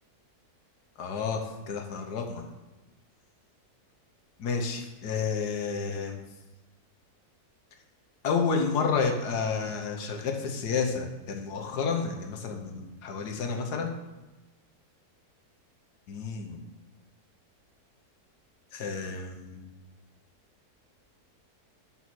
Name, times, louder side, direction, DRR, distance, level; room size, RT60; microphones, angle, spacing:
voice 1, 1.0-2.4 4.4-6.2 8.2-13.9 16.1-16.6 18.7-19.7, left 5 dB, 85° left, 3 dB, 1.5 m, -30 dB
7.6 x 4.2 x 6.1 m, 1.1 s
omnidirectional pair, 1.7 m